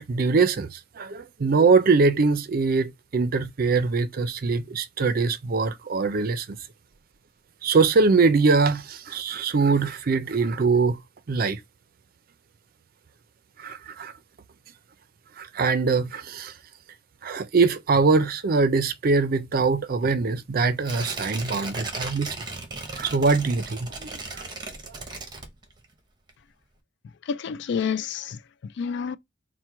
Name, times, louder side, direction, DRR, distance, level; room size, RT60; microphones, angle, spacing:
voice 1, 0.0-6.6 7.6-11.0 11.3-11.6 13.6-14.1 15.4-16.5 17.2-22.4 23.0-24.4, right 4 dB, 50° right, 0.5 m, -23 dB
Tearing, 20.8-25.9 26.3-26.4, right 3 dB, 25° right, 0.8 m, -36 dB
voice 2, 27.3-29.2, left 6 dB, 65° left, 0.3 m, -29 dB
4.4 x 2.1 x 4.4 m
head